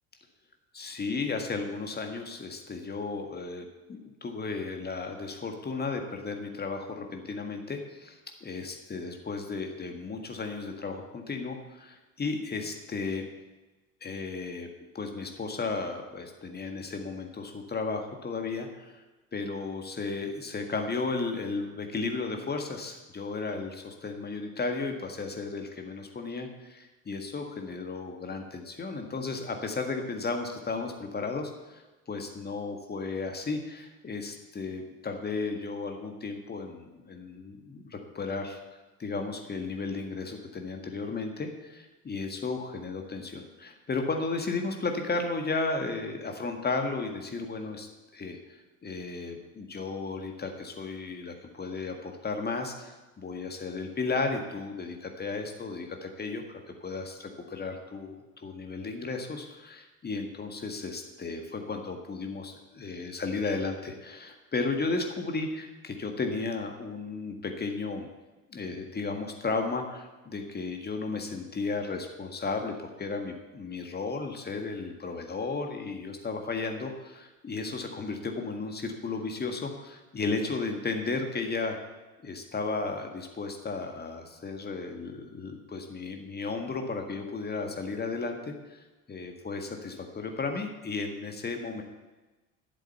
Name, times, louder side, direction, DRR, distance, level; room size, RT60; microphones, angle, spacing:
voice 1, 0.7-13.3 14.0-14.7 14.9-19.0 19.3-38.6 39.0-68.1 68.5-81.8 82.2-91.8, left 3 dB, 20° left, 4 dB, 1.7 m, -34 dB
12.5 x 7.8 x 6.9 m, 1.1 s
figure-of-eight pair, 65°, 44 cm